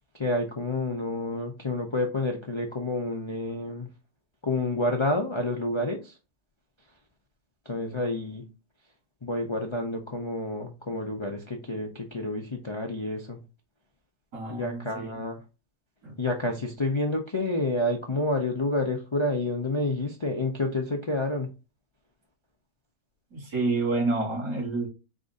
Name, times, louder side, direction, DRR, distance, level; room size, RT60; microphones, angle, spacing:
voice 1, 0.2-3.9 4.4-6.1 7.7-8.4 9.2-13.4 14.5-15.4 16.2-21.5, left 2 dB, 40° left, 0.4 m, -29 dB
voice 2, 14.3-15.1 16.0-16.1 23.3-24.9, right 3 dB, 80° right, 2.8 m, -28 dB
4.7 x 2.6 x 3.6 m
omnidirectional pair, 1.6 m